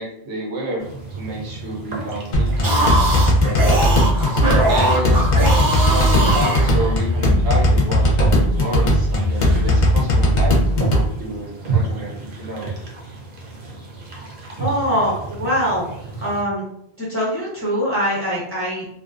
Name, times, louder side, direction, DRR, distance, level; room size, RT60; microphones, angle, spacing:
voice 1, 0.0-3.7 4.7-10.6 10.9-12.7, right 1 dB, 85° right, -2 dB, 1.0 m, -29 dB
sound 1, 0.8-16.4, right 3 dB, 60° right, 0.8 m, -31 dB
sound 2, 2.3-11.1, left 1 dB, 50° left, 0.7 m, -17 dB
sound 3, 2.5-7.2, right 1 dB, 30° right, 0.4 m, -21 dB
voice 2, 14.6-15.8 16.2-16.6 17.0-18.9, equal, 15° left, -6 dB, 0.6 m, -22 dB
2.4 x 2.2 x 2.4 m, 0.74 s
omnidirectional pair, 1.1 m